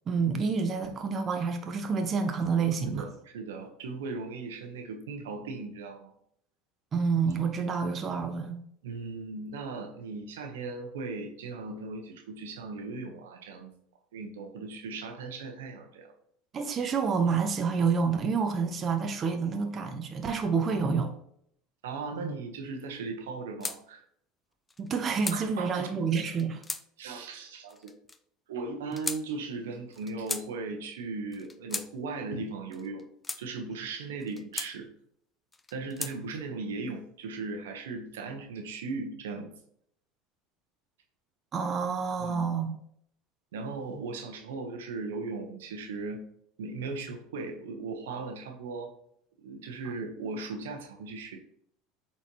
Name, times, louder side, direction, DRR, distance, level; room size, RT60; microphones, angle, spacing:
voice 1, 0.1-3.1 6.9-8.6 16.5-21.1 22.2-22.3 24.8-26.6 36.1-36.2 41.5-42.7, right 5 dB, 35° right, 0.8 m, -28 dB
voice 2, 2.8-6.1 8.8-13.7 14.1-16.1 21.8-24.0 25.3-25.9 27.0-27.9 28.5-33.0 33.4-34.9 35.7-39.5 42.2-42.4 43.5-46.2 46.6-48.9 49.4-51.4, right 3 dB, 85° right, 1.0 m, -37 dB
sound 1, 23.6-23.8 24.7-25.4 26.2-26.8 27.7-28.2 28.9-29.2 29.9-30.5 31.3-31.9 32.7-33.4 34.2-34.7 35.5-36.1, left 3 dB, 15° left, 0.5 m, -36 dB
8.0 x 4.4 x 3.0 m
hypercardioid pair, 90°, 0 cm